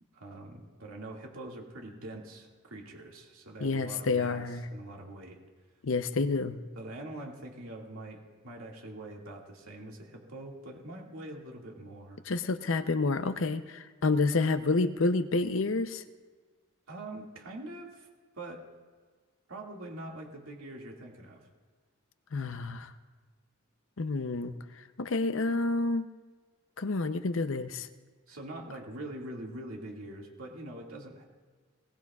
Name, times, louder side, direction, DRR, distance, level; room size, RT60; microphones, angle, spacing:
voice 1, 0.1-5.4 6.8-12.2 16.9-18.1 18.3-18.6 19.5-21.5 28.3-31.2, right 1 dB, 85° right, -1 dB, 2.2 m, -44 dB
voice 2, 3.6-4.7 5.8-6.6 12.3-16.0 22.3-22.9 24.0-24.5 25.0-26.1 26.8-27.9, left 3 dB, 65° left, 10 dB, 0.7 m, -29 dB
20.5 x 19.0 x 2.4 m, 1.4 s
head